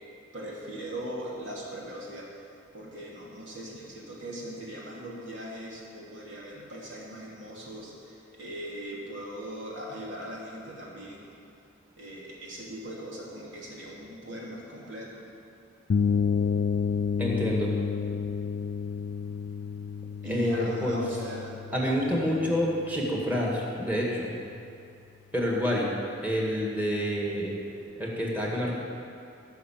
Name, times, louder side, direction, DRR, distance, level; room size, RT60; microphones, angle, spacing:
voice 1, 0.3-2.3 2.7-11.3 12.0-15.2 20.2-21.6, equal, 80° right, -4 dB, 2.9 m, -39 dB
sound 1, 15.9-23.6, left 6 dB, 60° left, 0.4 m, -30 dB
voice 2, 17.2-17.7 20.2-21.0 21.7-24.4 25.3-25.9 26.2-27.5 28.0-28.8, equal, 10° right, -3 dB, 1.9 m, -28 dB
17.0 x 5.9 x 7.4 m, 2.6 s
head